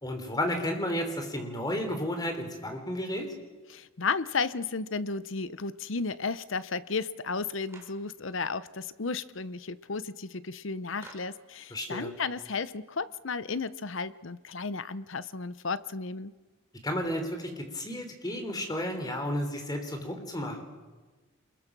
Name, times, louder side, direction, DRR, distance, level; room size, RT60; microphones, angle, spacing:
voice 1, 0.0-3.3 11.7-12.1 16.8-20.6, equal, 20° left, 5 dB, 3.5 m, -32 dB
voice 2, 3.7-16.3, left 4 dB, 65° left, 15 dB, 0.8 m, -33 dB
Clapping, 7.7-8.1 11.0-11.4, right 2 dB, 15° right, 3.8 m, -50 dB
27.5 x 22.0 x 6.2 m, 1.3 s
head